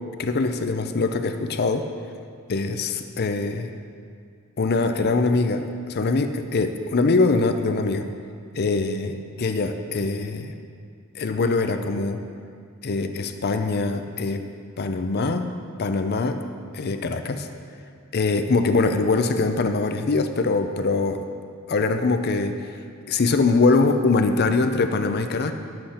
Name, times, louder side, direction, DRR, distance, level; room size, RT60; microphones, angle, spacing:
voice 1, 0.2-1.9 2.5-3.7 4.6-8.1 8.5-10.6 11.2-12.2 12.8-14.4 14.8-15.5 15.8-16.4 16.7-17.5 18.1-21.2 21.7-22.6 23.1-25.5, left 3 dB, 45° left, 7 dB, 0.5 m, -23 dB
11.5 x 7.7 x 4.3 m, 2.2 s
head